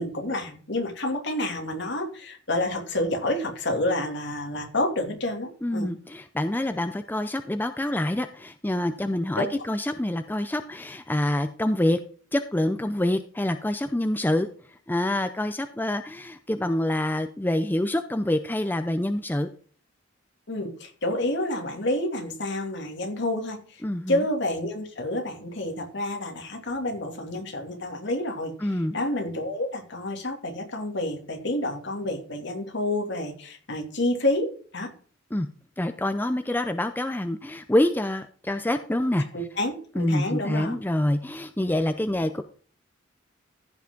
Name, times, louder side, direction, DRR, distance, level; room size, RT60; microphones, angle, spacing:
voice 1, 0.0-5.9 9.4-9.6 20.5-23.8 24.1-34.9 39.3-40.7, left 1 dB, 60° left, 3 dB, 2.7 m, -29 dB
voice 2, 5.6-12.0 12.3-19.5 23.8-24.2 28.6-29.0 35.3-35.5 35.8-39.2 39.9-42.4, left 1 dB, 10° left, 9 dB, 0.5 m, -26 dB
15.0 x 5.9 x 3.8 m, 0.43 s
head